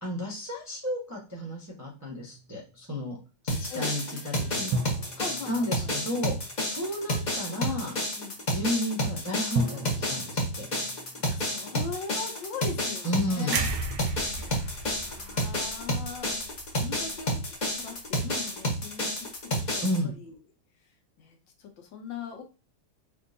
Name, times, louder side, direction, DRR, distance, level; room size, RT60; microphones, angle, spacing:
voice 1, 0.0-3.2 3.4-4.7 5.5-6.4 6.7-7.9 8.5-10.7 13.0-13.7 19.8-20.1, left 1 dB, 25° right, -4 dB, 0.4 m, -32 dB
sound 1, 2.0-3.0 4.7-7.1 9.6-12.6, right 2 dB, 90° right, 1.5 m, -36 dB
sound 2, 3.5-20.0, equal, 40° left, 0.6 m, -30 dB
voice 2, 3.7-4.0 5.2-5.9 8.1-8.4 10.8-13.6 14.4-20.4 21.2-22.4, left 5 dB, 70° left, 4 dB, 1.4 m, -41 dB
sound 3, 13.5-17.5 17.9-18.1, right 4 dB, 75° right, 1.2 m, -35 dB
4.5 x 2.6 x 2.5 m, 0.32 s
omnidirectional pair, 2.3 m